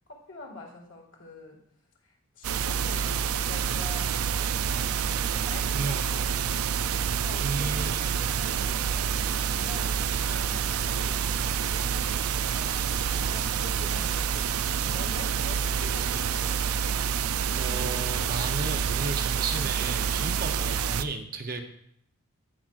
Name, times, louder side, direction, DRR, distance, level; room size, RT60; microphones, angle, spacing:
voice 1, 0.1-1.6 2.0-16.6, left 2 dB, 60° left, 0 dB, 2.0 m, -46 dB
sound 1, 2.4-21.0, right 7 dB, 80° right, 0.4 m, -28 dB
voice 2, 5.7-6.1 7.4-8.0 17.5-21.6, right 3 dB, 40° right, 5 dB, 0.7 m, -34 dB
15.0 x 6.1 x 2.5 m, 0.69 s
head